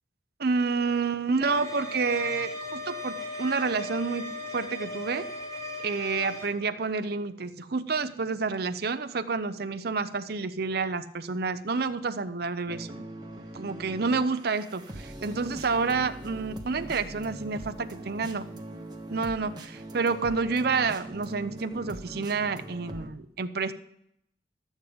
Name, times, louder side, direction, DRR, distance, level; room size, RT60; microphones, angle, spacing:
voice 1, 0.4-5.3 5.8-13.1 13.5-18.5 19.1-23.7, right 4 dB, 60° right, 10 dB, 0.7 m, -29 dB
sound 1, 1.4-6.4, left 1 dB, 20° left, 6.1 m, -37 dB
sound 2, 12.7-23.1, right 1 dB, 25° right, 1.4 m, -41 dB
12.0 x 8.9 x 5.2 m, 0.74 s
head